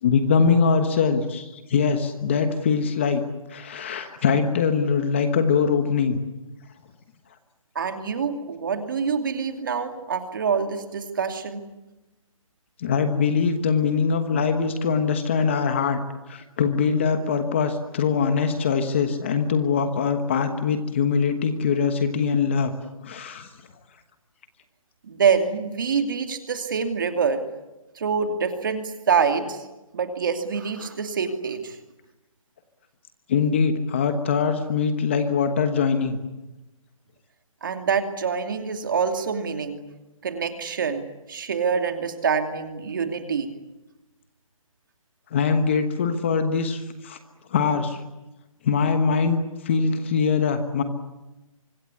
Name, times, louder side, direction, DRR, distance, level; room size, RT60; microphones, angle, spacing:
voice 1, 0.0-3.2 3.5-6.2 12.8-16.0 16.3-22.7 23.0-23.5 33.3-36.2 45.3-47.2 47.5-48.0 48.6-50.8, left 5 dB, 20° left, 8 dB, 1.2 m, -22 dB
voice 2, 7.7-11.6 25.0-27.4 28.0-29.7 29.9-31.8 37.6-39.8 40.2-41.0 41.3-43.5, right 6 dB, 35° right, 6 dB, 2.6 m, -25 dB
25.0 x 21.5 x 9.7 m, 1.0 s
hypercardioid pair, 175°, 18 cm